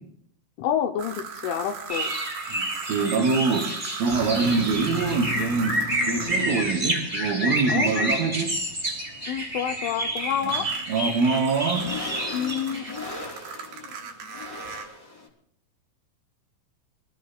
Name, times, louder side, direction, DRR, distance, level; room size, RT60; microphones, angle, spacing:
voice 1, 0.6-2.1 7.7-8.2 9.3-10.7 12.3-12.9, left 9 dB, 80° left, 6 dB, 3.0 m, -28 dB
sound 1, 1.0-6.4 10.2-14.8, right 6 dB, 60° right, 2.7 m, -38 dB
sound 2, 1.1-15.3, left 3 dB, 25° left, 3.0 m, -39 dB
sound 3, 1.9-13.0, right 1 dB, 10° right, 2.6 m, -29 dB
voice 2, 2.5-3.7 4.0-5.8 6.1-8.5 10.4-10.5 10.9-11.9, right 4 dB, 80° right, -1 dB, 4.9 m, -24 dB
29.5 x 16.5 x 2.4 m, 0.68 s
omnidirectional pair, 6.0 m